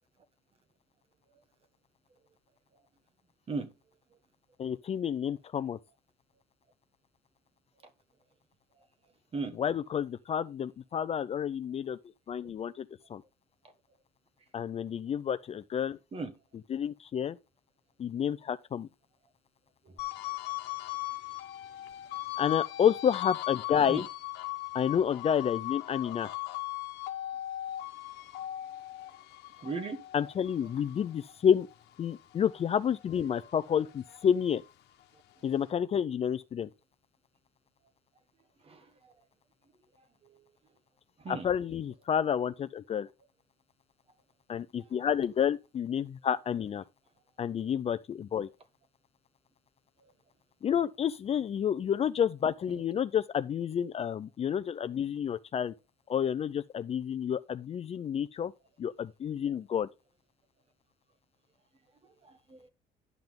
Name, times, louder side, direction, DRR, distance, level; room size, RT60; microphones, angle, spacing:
voice 1, 4.6-5.8 9.5-12.0 12.3-13.2 14.5-16.0 16.5-17.4 18.0-18.9 22.4-24.1 24.7-26.3 30.1-31.7 32.0-34.6 35.4-36.7 41.3-43.1 44.5-46.8 47.4-48.5 50.6-55.7 56.1-58.5 58.8-59.9, left 8 dB, 35° left, 0.4 m, -30 dB
sound 1, 20.0-32.6 33.0-34.7, left 16 dB, 80° left, 1.1 m, -39 dB
voice 2, 29.6-30.0 38.6-39.1 40.2-40.4 41.2-41.5 50.0-50.1 62.2-62.7, right 4 dB, 35° right, 1.4 m, -38 dB
10.5 x 5.8 x 3.6 m
cardioid pair, 110°, 17 cm